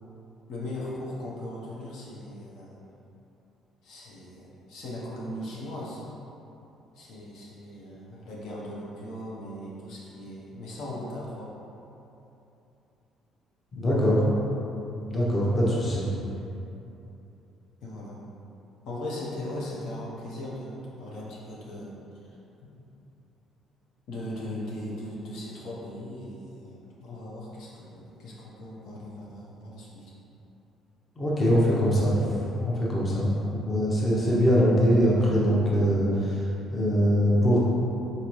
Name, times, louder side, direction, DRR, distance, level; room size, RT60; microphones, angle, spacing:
voice 1, 0.5-2.8 3.8-6.0 6.9-11.5 17.8-18.2 18.8-22.4 24.1-30.1, left 1 dB, 70° left, -5 dB, 0.8 m, -38 dB
voice 2, 13.7-14.2 15.1-16.1 31.2-32.2 32.6-36.4 36.7-37.6, equal, 25° left, -6 dB, 0.8 m, -22 dB
4.0 x 3.9 x 3.1 m, 2.8 s
cardioid pair, 145°, 0 cm